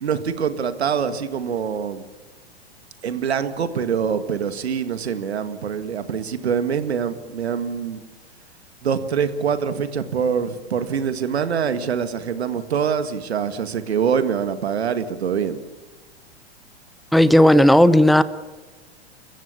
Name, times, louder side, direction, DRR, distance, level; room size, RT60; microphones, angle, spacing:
voice 1, 0.0-2.0 3.0-8.0 8.8-15.6, right 7 dB, 75° right, 11 dB, 2.0 m, -24 dB
voice 2, 17.1-18.2, left 1 dB, ahead, 15 dB, 0.8 m, -13 dB
29.0 x 15.5 x 7.1 m, 1.2 s
hypercardioid pair, 100°, 32 cm